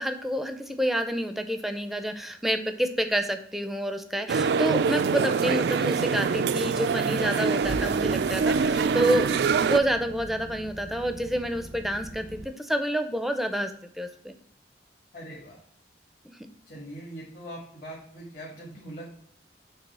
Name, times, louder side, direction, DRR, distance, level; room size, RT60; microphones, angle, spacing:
voice 1, 0.0-9.3 9.6-13.7 14.0-14.3, right 1 dB, ahead, 8 dB, 0.5 m, -28 dB
sound 1, 4.3-9.8, right 5 dB, 65° right, 0.3 m, -24 dB
sound 2, 7.6-12.4, right 1 dB, 90° right, 0.8 m, -41 dB
voice 2, 15.1-15.6 16.7-19.1, right 1 dB, 50° left, -5 dB, 1.9 m, -41 dB
7.0 x 3.2 x 5.4 m, 0.65 s
head